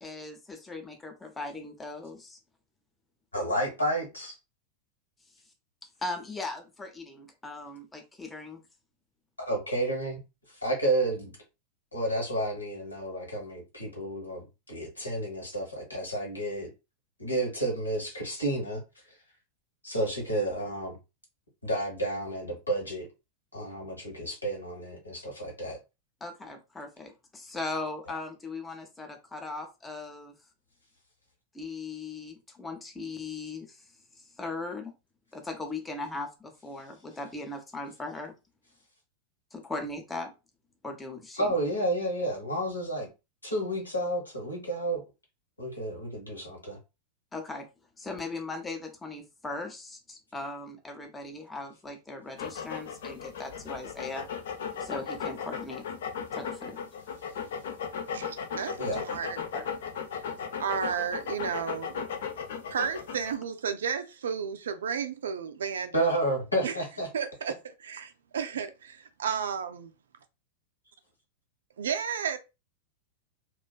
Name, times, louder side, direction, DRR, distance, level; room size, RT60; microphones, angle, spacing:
voice 1, 0.0-2.4 6.0-8.6 26.2-30.3 31.5-33.8 34.2-34.9 35.3-38.3 39.5-40.3 40.8-41.5 47.3-47.7 48.0-54.3 54.8-55.8 56.3-56.8 58.5-59.0 59.5-59.6, left 3 dB, 10° left, 0.6 m, -39 dB
voice 2, 3.3-4.3 9.5-10.2 10.6-11.3 11.9-16.7 17.2-18.8 19.8-21.0 21.6-23.1 23.5-25.8 41.3-43.1 43.4-45.0 45.6-46.8 58.8-59.0 65.9-67.1, right 1 dB, 80° left, 1.1 m, -31 dB
sound 1, 52.4-63.3, left 6 dB, 60° left, 0.4 m, -36 dB
voice 3, 58.1-59.4 60.1-60.2 60.6-62.1 62.7-66.1 66.6-66.7 67.1-67.5 67.8-69.9 71.8-72.4, right 7 dB, 65° right, 0.4 m, -33 dB
2.4 x 2.3 x 2.3 m
figure-of-eight pair, 90°, 0 cm